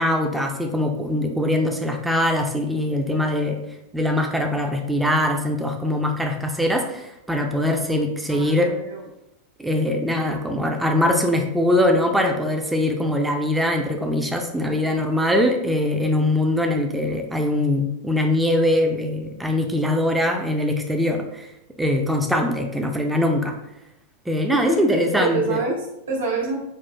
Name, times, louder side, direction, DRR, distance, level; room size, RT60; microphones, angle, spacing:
voice 1, 0.0-3.6 3.9-8.7 9.6-21.5 21.8-23.6 24.3-25.6, left 1 dB, 5° right, 3 dB, 0.5 m, -22 dB
voice 2, 8.3-9.1 24.5-26.6, right 2 dB, 75° right, -6 dB, 1.2 m, -26 dB
5.6 x 2.4 x 2.3 m, 0.86 s
figure-of-eight pair, 90°, 0 cm